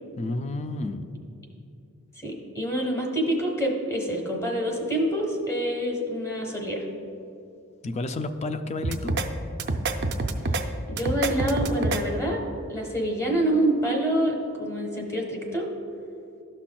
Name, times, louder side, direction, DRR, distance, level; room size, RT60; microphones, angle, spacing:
voice 1, 0.2-1.2 7.8-9.2, left 2 dB, 30° left, 9 dB, 0.3 m, -31 dB
voice 2, 2.2-6.8 10.9-12.4 12.7-15.7, right 1 dB, 15° left, 0 dB, 1.0 m, -26 dB
sound 1, 8.8-9.3 9.6-10.6 11.0-12.0, right 2 dB, 50° right, 0.5 m, -26 dB
12.5 x 5.7 x 2.3 m, 2.6 s
head